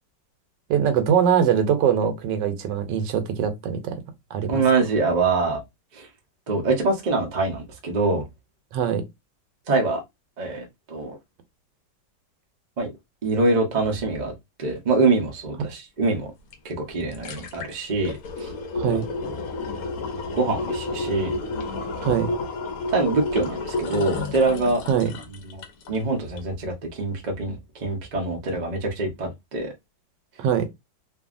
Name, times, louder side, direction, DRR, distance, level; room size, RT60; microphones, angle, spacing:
voice 1, 0.7-4.0 4.3-4.6 8.7-9.1 18.7-19.1 22.0-22.3 24.9-25.1 30.4-30.7, right 8 dB, 75° right, 1.2 m, -22 dB
voice 2, 4.5-5.6 5.9-6.1 6.5-8.3 9.7-10.0 10.4-11.2 12.8-12.9 13.2-14.3 14.6-16.3 16.6-18.5 20.3-21.3 22.0-22.2 22.9-24.8 25.5-25.6 25.9-29.7, right 3 dB, 60° right, 0.4 m, -24 dB
sound 1, 16.5-16.6 16.9-26.0 26.4-26.5, left 3 dB, 65° left, 0.9 m, -31 dB
2.7 x 2.6 x 2.4 m
omnidirectional pair, 2.0 m